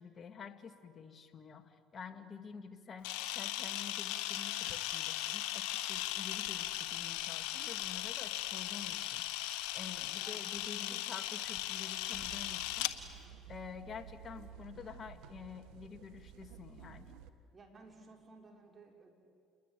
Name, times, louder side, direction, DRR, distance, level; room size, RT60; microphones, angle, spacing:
voice 1, 0.0-9.3 9.7-12.9 13.5-17.2, left 6 dB, 40° left, 7 dB, 2.3 m, -49 dB
Camera, 3.0-12.9, left 14 dB, 80° left, 1.4 m, -38 dB
sound 1, 12.1-17.3, right 9 dB, 80° right, 1.5 m, -53 dB
voice 2, 17.5-19.1, right 3 dB, 35° right, 2 dB, 6.0 m, -57 dB
29.5 x 21.5 x 9.4 m, 2.4 s
supercardioid pair, 80°, 0 cm